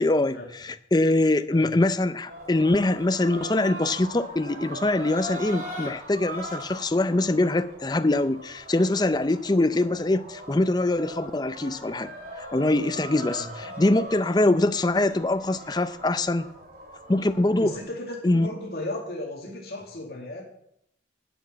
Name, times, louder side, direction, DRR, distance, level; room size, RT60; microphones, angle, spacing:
voice 1, 0.0-16.5 17.1-17.7 18.2-18.5, left 2 dB, 20° left, 11 dB, 0.5 m, -23 dB
sound 1, 2.3-17.8, right 1 dB, 50° right, 2.8 m, -40 dB
voice 2, 17.6-20.4, left 1 dB, 55° left, -2 dB, 2.3 m, -35 dB
11.0 x 6.1 x 8.6 m, 0.76 s
head